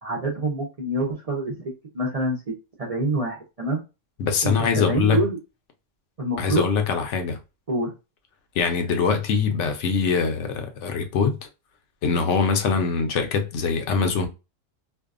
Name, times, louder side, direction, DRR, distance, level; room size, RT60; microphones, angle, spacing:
voice 1, 0.0-3.8 4.4-5.4 6.2-6.7 7.7-7.9, right 2 dB, 45° right, 0.5 m, -26 dB
voice 2, 4.2-5.2 6.4-7.4 8.6-11.4 12.0-14.3, left 5 dB, 75° left, 0.9 m, -23 dB
2.6 x 2.2 x 2.3 m
omnidirectional pair, 1.3 m